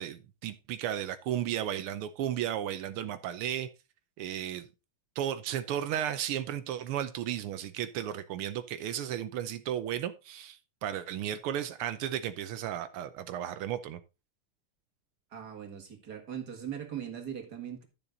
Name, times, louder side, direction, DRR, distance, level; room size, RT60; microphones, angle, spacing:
voice 1, 0.0-3.7 4.2-4.7 5.2-14.0, right 10 dB, 85° right, 1.6 m, -34 dB
voice 2, 15.3-17.8, right 9 dB, 50° right, 2.3 m, -40 dB
12.0 x 7.0 x 3.9 m
omnidirectional pair, 2.3 m